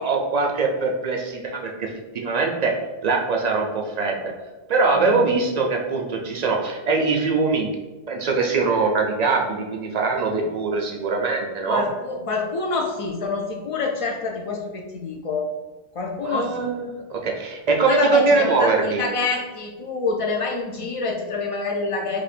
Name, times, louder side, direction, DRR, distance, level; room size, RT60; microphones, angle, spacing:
voice 1, 0.0-2.7 3.0-4.3 4.7-7.7 8.1-11.8 16.2-19.0, right 4 dB, 55° right, 1 dB, 0.5 m, -22 dB
voice 2, 11.7-15.5 16.0-16.7 17.9-22.2, left 3 dB, 55° left, 1 dB, 0.3 m, -27 dB
2.6 x 2.4 x 4.2 m, 1.2 s
omnidirectional pair, 1.1 m